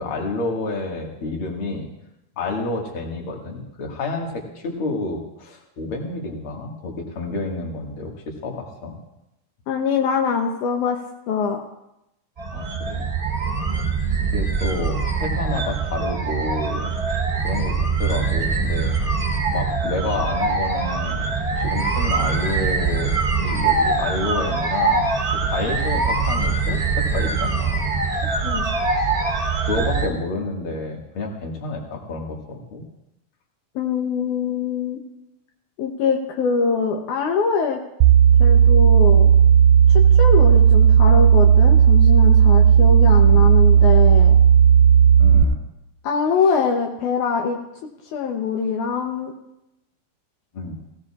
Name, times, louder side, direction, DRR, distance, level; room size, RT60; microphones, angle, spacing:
voice 1, 0.0-1.9 2.4-8.1 8.4-9.0 12.5-13.2 14.2-16.9 17.4-19.2 19.5-21.3 21.5-23.1 23.4-27.9 29.6-32.8 43.2-43.5 45.2-45.6 50.5-50.7, left 3 dB, 45° left, 0 dB, 2.4 m, -29 dB
voice 2, 9.7-11.0 11.3-11.6 28.4-28.6 33.8-35.0 35.8-37.8 38.4-39.3 39.9-44.4 46.0-47.6 48.1-49.3, left 5 dB, 75° left, 2 dB, 2.3 m, -23 dB
sound 1, 12.4-30.1, right 4 dB, 20° right, 2.8 m, -23 dB
sound 2, 38.0-45.4, right 8 dB, 85° right, 2.2 m, -13 dB
19.5 x 16.0 x 2.4 m, 0.89 s
omnidirectional pair, 3.7 m